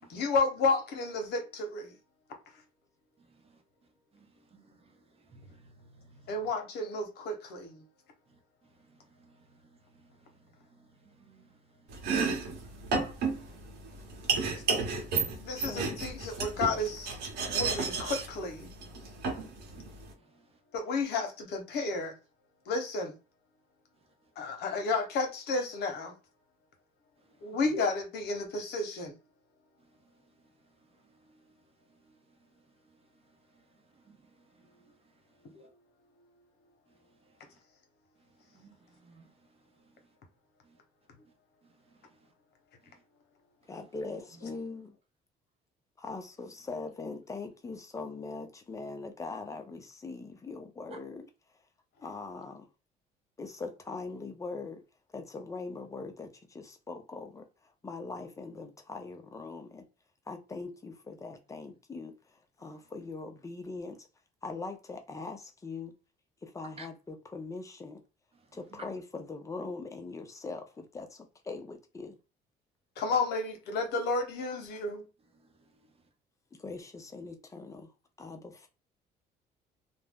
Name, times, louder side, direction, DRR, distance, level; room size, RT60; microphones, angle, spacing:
voice 1, 0.1-1.9 6.3-7.8 15.4-17.1 17.5-18.7 20.7-22.1 22.7-23.1 24.4-26.1 27.4-29.1 35.4-35.7 73.0-75.0, left 3 dB, 75° left, 0.9 m, -32 dB
voice 2, 5.3-6.4 8.9-9.6 9.9-10.1 10.7-10.9 11.2-11.5 38.6-38.7 39.0-39.3 66.8-66.9, right 3 dB, 35° right, 0.8 m, -55 dB
Domestic sounds home sounds, 11.9-20.1, right 4 dB, 75° right, 1.0 m, -33 dB
voice 3, 43.7-44.9 46.0-51.3 52.0-52.7 53.4-54.8 55.1-57.5 57.8-59.8 60.3-62.1 62.6-64.1 64.4-65.9 66.4-68.0 68.5-72.2 76.6-77.9 78.2-78.7, left 3 dB, 20° left, 0.6 m, -41 dB
2.5 x 2.1 x 3.5 m
cardioid pair, 110°, 17 cm